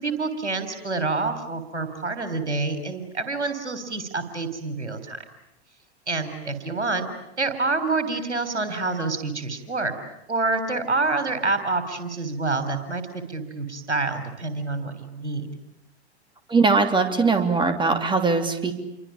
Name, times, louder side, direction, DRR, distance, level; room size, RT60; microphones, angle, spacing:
voice 1, 0.0-5.2 6.1-7.1 7.4-9.9 10.3-13.0 13.3-15.5, right 3 dB, 85° right, 9 dB, 3.7 m, -27 dB
voice 2, 16.5-18.7, right 4 dB, 15° right, 8 dB, 3.1 m, -21 dB
28.5 x 24.0 x 8.7 m, 0.84 s
figure-of-eight pair, 95°, 34 cm